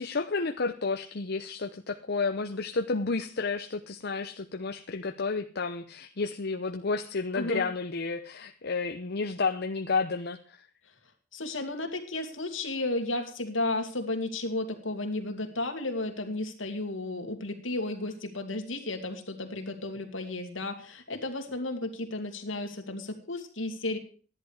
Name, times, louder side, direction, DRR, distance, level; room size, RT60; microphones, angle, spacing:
voice 1, 0.0-10.6, left 4 dB, 55° left, 6 dB, 0.8 m, -31 dB
voice 2, 11.3-24.0, left 2 dB, 70° left, 5 dB, 2.5 m, -33 dB
13.5 x 11.0 x 4.9 m, 0.40 s
head